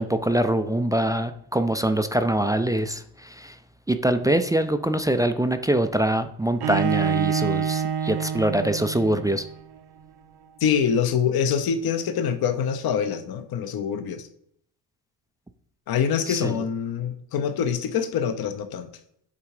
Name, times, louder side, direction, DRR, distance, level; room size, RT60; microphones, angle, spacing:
voice 1, 0.0-3.6 3.9-9.4 16.3-16.6, right 1 dB, 10° right, 9 dB, 0.3 m, -24 dB
Bowed string instrument, 6.6-9.6, right 7 dB, 60° right, 0.7 m, -26 dB
voice 2, 10.6-14.3 15.9-18.9, left 7 dB, 50° left, 9 dB, 0.9 m, -25 dB
8.5 x 3.6 x 4.8 m, 0.68 s
cardioid pair, 85°, 46 cm